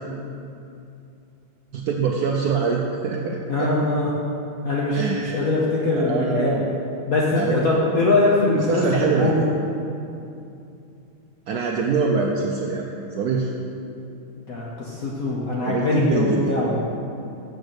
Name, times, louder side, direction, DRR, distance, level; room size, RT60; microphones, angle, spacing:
voice 1, 1.7-3.7 4.9-5.5 5.9-6.7 7.3-7.7 8.5-9.3 11.5-13.5 15.6-16.6, right 5 dB, 75° right, 0 dB, 0.8 m, -24 dB
voice 2, 3.5-4.1 4.6-6.6 7.1-9.5 14.5-16.9, left 2 dB, 55° left, -4 dB, 1.1 m, -22 dB
7.0 x 6.3 x 6.5 m, 2.7 s
omnidirectional pair, 2.3 m